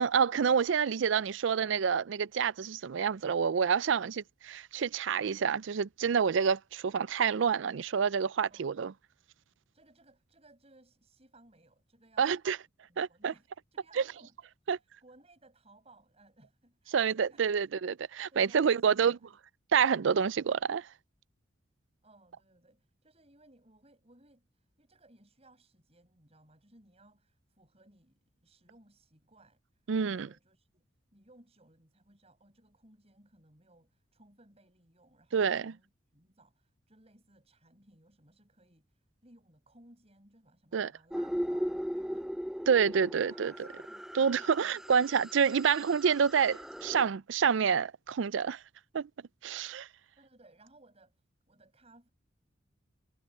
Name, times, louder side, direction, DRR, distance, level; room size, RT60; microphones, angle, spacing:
voice 1, 0.0-8.9 12.2-12.6 13.0-13.3 14.0-14.1 14.7-14.8 16.9-19.2 19.7-20.9 29.9-30.3 35.3-35.7 40.7-40.9 42.7-43.5 44.1-48.6 48.9-49.1 49.4-49.9, right 6 dB, 70° right, 0.4 m, -28 dB
voice 2, 9.7-12.4 12.9-17.4 18.3-19.4 22.0-30.8 31.1-42.3 42.9-44.8 50.2-52.1, right 2 dB, 30° right, 6.3 m, -62 dB
sound 1, 41.1-47.0, equal, ahead, 0.5 m, -38 dB
head